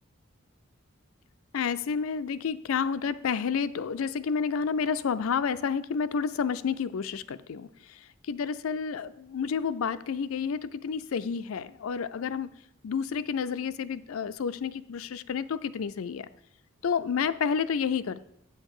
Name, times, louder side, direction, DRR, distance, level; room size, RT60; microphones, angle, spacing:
voice 1, 1.5-7.7 8.3-12.5 12.8-16.3 16.8-18.2, left 6 dB, 90° left, 14 dB, 0.4 m, -30 dB
8.3 x 6.5 x 4.8 m, 0.73 s
head